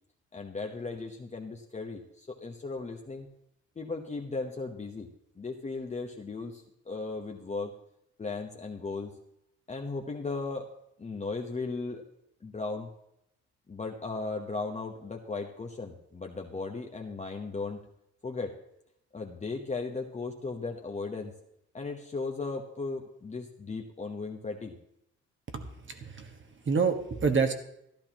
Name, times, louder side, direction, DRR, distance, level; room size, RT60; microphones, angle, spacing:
voice 1, 0.3-3.3 3.8-5.1 5.4-7.7 8.2-9.1 9.7-10.7 11.0-12.0 12.4-12.9 13.7-17.8 18.2-18.5 19.1-21.3 21.7-24.8, left 3 dB, 25° left, 2 dB, 1.0 m, -36 dB
voice 2, 25.5-26.4 26.6-27.5, right 5 dB, 40° right, 6 dB, 1.5 m, -28 dB
14.0 x 12.0 x 3.0 m, 0.79 s
cardioid pair, 90°, 30 cm